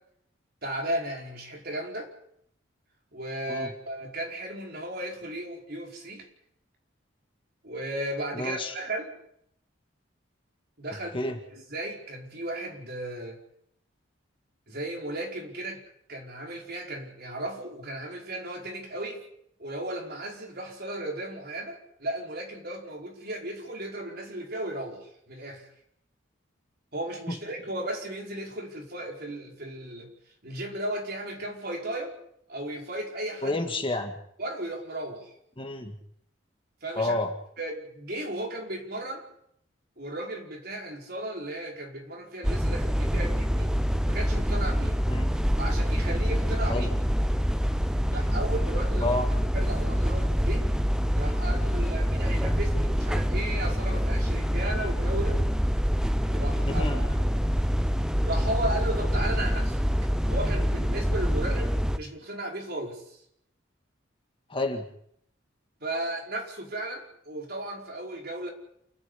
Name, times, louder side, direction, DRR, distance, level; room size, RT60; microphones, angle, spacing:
voice 1, 0.6-2.1 3.1-6.3 7.6-9.1 10.8-11.2 11.5-13.4 14.7-15.8 16.1-19.2 19.6-25.7 26.9-30.1 30.4-32.2 32.5-33.6 34.4-35.3 36.8-37.1 37.6-39.2 40.0-43.7 44.1-45.0 45.6-46.9 48.1-49.2 49.5-50.6 51.1-55.4 56.3-57.3 58.2-59.8 60.3-63.2 65.8-68.5, right 1 dB, 50° right, 1 dB, 5.1 m, -35 dB
voice 2, 8.3-8.8 11.1-11.4 27.3-27.4 33.4-34.2 35.6-36.0 37.0-37.3 45.1-45.3 46.7-46.9 49.0-49.3 56.6-57.0 64.5-64.9, left 2 dB, 25° left, 4 dB, 1.9 m, -29 dB
sound 1, 42.4-62.0, equal, 5° right, 0.8 m, -26 dB
28.5 x 10.5 x 10.0 m, 0.71 s
head